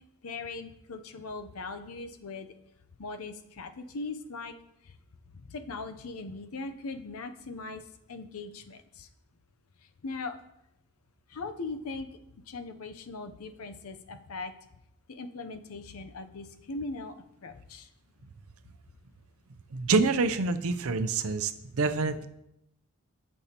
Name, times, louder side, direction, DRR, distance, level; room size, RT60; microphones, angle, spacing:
voice 1, 0.2-2.5 3.0-4.5 4.8-4.9 5.3-7.8 8.1-9.1 10.0-10.4 11.3-12.1 12.5-14.5 15.1-17.1 17.4-17.9, left 3 dB, 80° left, 9 dB, 0.6 m, -39 dB
voice 2, 19.7-22.3, right 4 dB, 75° right, 10 dB, 0.6 m, -27 dB
14.5 x 5.5 x 2.9 m, 0.84 s
head